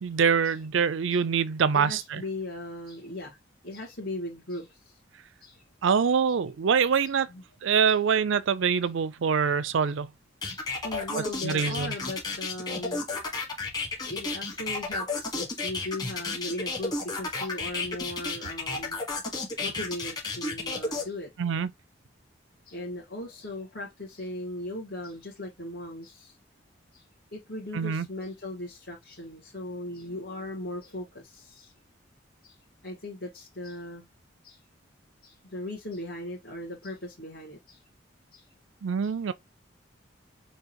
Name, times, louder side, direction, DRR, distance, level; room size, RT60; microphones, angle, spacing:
voice 1, 0.0-2.2 5.8-7.3 7.6-10.1 11.4-11.9 21.4-21.7 27.7-28.1 38.8-39.3, right 6 dB, 75° right, 0.4 m, -24 dB
voice 2, 1.7-3.4 3.6-5.0 5.4-5.6 7.3-7.4 7.9-8.0 10.5-13.1 14.0-19.0 19.6-21.3 22.7-26.3 26.9-27.0 27.3-31.7 32.4-32.6 32.8-34.1 34.4-34.6 35.2-37.8 38.3-38.5 39.0-39.1, left 1 dB, 60° left, 1.8 m, -38 dB
sound 1, 10.4-21.0, left 3 dB, 20° left, 1.5 m, -32 dB
6.2 x 2.8 x 3.0 m
head